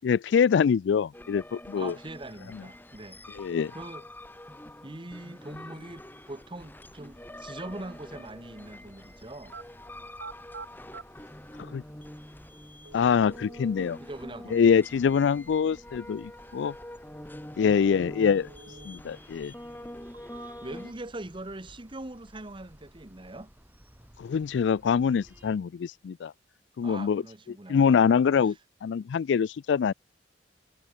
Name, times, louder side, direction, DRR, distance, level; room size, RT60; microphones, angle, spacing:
voice 1, 0.0-1.9 2.5-2.6 3.3-3.7 11.6-11.8 12.9-14.0 14.5-16.7 17.6-18.5 18.8-19.5 24.2-26.3 26.8-27.2 27.7-28.5 28.8-29.9, left 6 dB, 75° left, 0.3 m, -24 dB
sound 1, 1.1-20.9, left 1 dB, 10° left, 3.1 m, -45 dB
voice 2, 1.8-3.2 3.7-4.1 4.8-9.5 14.0-14.6 17.6-17.8 20.4-23.5 26.8-28.0, right 2 dB, 25° right, 1.2 m, -42 dB
sound 2, 6.6-25.6, equal, 10° right, 3.7 m, -57 dB
sound 3, 9.5-9.7 10.1-11.1 12.0-12.1 12.8-13.9 17.8-18.9 19.3-19.4 20.0-20.8 21.3-22.0 22.3-22.9, right 4 dB, 90° right, 3.9 m, -47 dB
head